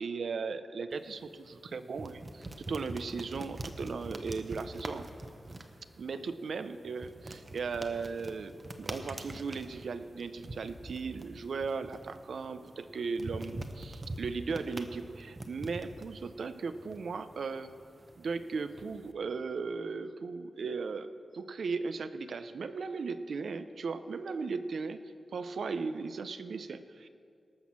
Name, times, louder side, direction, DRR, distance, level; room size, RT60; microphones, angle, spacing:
voice 1, 0.0-5.1 6.0-17.7 18.2-21.1 21.3-25.0 25.3-27.1, right 4 dB, 65° right, 11 dB, 0.6 m, -37 dB
sound 1, 0.9-19.1, right 2 dB, 30° right, 0.8 m, -45 dB
18.0 x 6.2 x 7.2 m, 2.4 s
wide cardioid pair, 125°, 0 cm